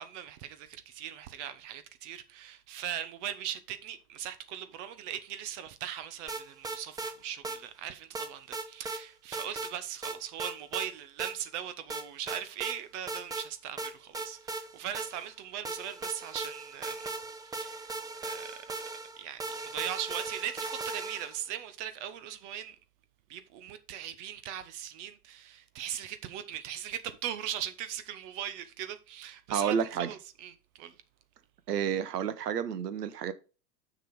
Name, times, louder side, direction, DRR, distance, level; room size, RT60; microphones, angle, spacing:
voice 1, 0.0-17.1 17.4-18.5 19.2-22.8 23.3-31.0, right 10 dB, 45° right, 0.9 m, -39 dB
sound 1, 6.3-7.1 7.4-7.6 8.1-9.0 9.3-9.7 10.0-10.9 11.2-11.3 11.9-12.8 13.1-13.5 13.8-15.3 15.6-21.4, right 3 dB, 10° right, 0.7 m, -38 dB
voice 2, 29.5-30.1 31.7-33.3, right 8 dB, 75° right, 1.0 m, -30 dB
6.6 x 6.1 x 4.7 m
figure-of-eight pair, 90°, 48 cm